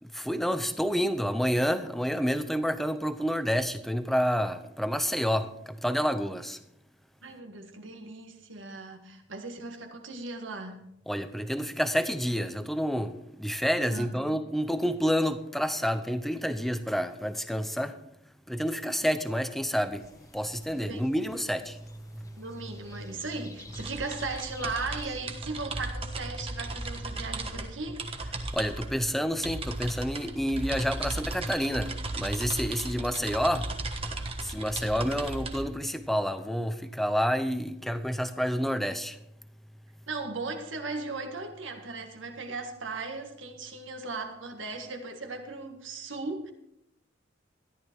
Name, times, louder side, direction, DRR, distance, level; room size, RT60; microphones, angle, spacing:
voice 1, 0.0-6.6 11.1-18.0 18.5-20.1 20.3-22.4 28.5-33.8 34.0-39.2, equal, ahead, 0.7 m, -29 dB
voice 2, 7.2-10.8 13.9-14.4 20.9-21.1 22.4-28.1 40.1-46.5, right 3 dB, 75° right, 1.7 m, -37 dB
sound 1, 19.9-25.2, left 2 dB, 15° left, 1.2 m, -52 dB
sound 2, 23.7-35.6, right 2 dB, 30° right, 1.3 m, -36 dB
14.0 x 11.5 x 4.6 m
head